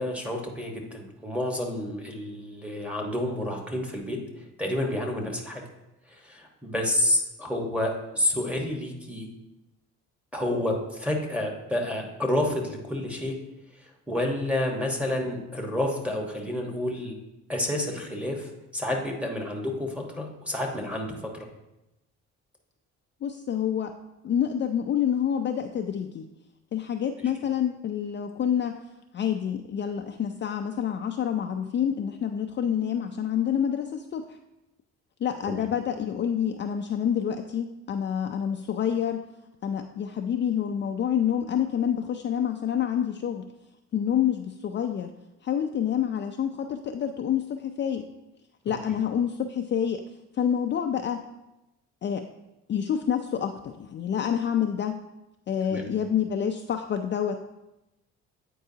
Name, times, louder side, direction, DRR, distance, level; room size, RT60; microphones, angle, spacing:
voice 1, 0.0-5.6 6.1-9.3 10.3-13.4 13.8-17.2 17.5-21.5 35.5-35.6 55.7-55.9, left 1 dB, 5° right, 0 dB, 1.2 m, -29 dB
voice 2, 23.2-23.9 24.2-26.3 26.7-28.8 29.1-34.4 35.2-39.2 39.6-43.5 43.9-45.1 45.4-48.1 48.7-50.0 50.3-51.2 52.0-52.2 52.7-55.0 55.5-57.4, left 9 dB, 40° left, 5 dB, 0.4 m, -27 dB
8.8 x 4.6 x 2.8 m, 0.95 s
cardioid pair, 90°, 30 cm